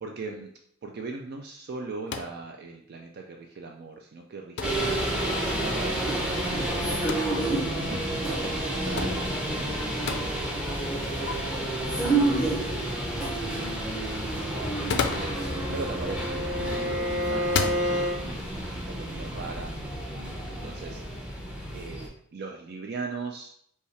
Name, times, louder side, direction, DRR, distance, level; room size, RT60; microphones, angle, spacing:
voice 1, 0.0-0.5 0.8-7.1 7.8-19.7 20.5-21.4 21.7-23.5, right 3 dB, 50° right, 2 dB, 0.4 m, -40 dB
sound 1, 2.1-2.4 4.6-4.9 6.9-7.2 9.0-9.2 10.1-10.3 11.3-11.4 14.7-15.4 16.5-16.8 17.4-17.8, left 5 dB, 55° left, 0.4 m, -30 dB
sound 2, 4.6-22.1, right 1 dB, 5° right, 0.7 m, -30 dB
Bowed string instrument, 15.0-18.2, equal, 75° right, 1.1 m, -30 dB
5.4 x 2.4 x 3.2 m, 0.66 s
head